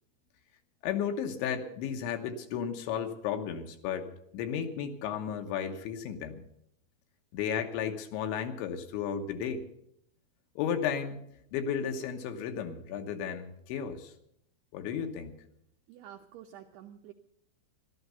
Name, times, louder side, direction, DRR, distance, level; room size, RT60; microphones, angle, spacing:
voice 1, 0.8-4.1 4.3-6.4 7.3-9.6 10.6-11.2 11.5-14.1 14.7-15.3, left 8 dB, 75° left, 6 dB, 3.4 m, -34 dB
voice 2, 15.9-17.1, right 10 dB, 80° right, 3 dB, 2.3 m, -49 dB
14.5 x 12.5 x 6.8 m, 0.75 s
omnidirectional pair, 5.5 m